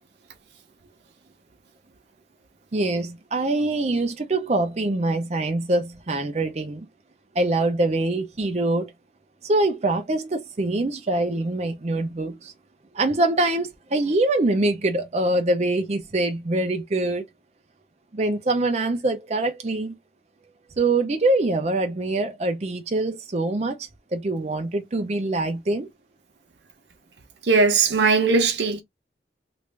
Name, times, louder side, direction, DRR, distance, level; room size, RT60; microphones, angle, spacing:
voice 1, 2.7-6.9 7.3-8.9 9.4-12.5 12.9-17.3 18.1-19.9 20.8-25.9, right 2 dB, 40° right, 0.5 m, -24 dB
voice 2, 27.5-28.8, right 4 dB, 80° right, 0.8 m, -19 dB
3.1 x 2.5 x 3.2 m
head